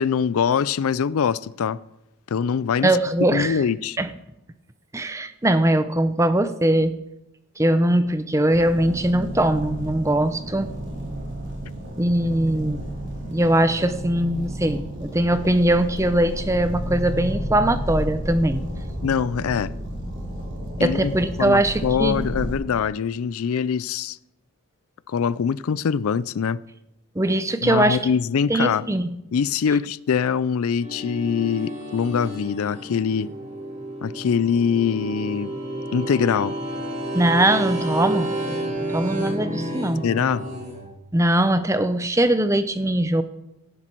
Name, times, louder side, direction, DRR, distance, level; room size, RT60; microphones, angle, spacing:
voice 1, 0.0-1.8 2.3-2.9 3.3-4.0 19.0-19.7 20.8-21.1 21.4-24.2 25.1-26.6 27.6-28.9 29.3-33.3 34.0-35.5 35.9-36.6 40.0-40.4, left 6 dB, 75° left, 0.4 m, -23 dB
voice 2, 2.8-3.6 4.0-4.1 4.9-7.0 7.6-10.7 12.0-12.8 13.3-18.6 20.8-22.2 27.2-28.0 28.5-29.1 37.1-38.3 38.9-40.0 41.1-43.2, right 1 dB, 15° right, 0.6 m, -21 dB
sound 1, 8.5-22.6, equal, 50° right, 3.9 m, -32 dB
sound 2, 30.8-40.8, right 1 dB, 35° right, 4.6 m, -30 dB
17.0 x 10.0 x 4.6 m
head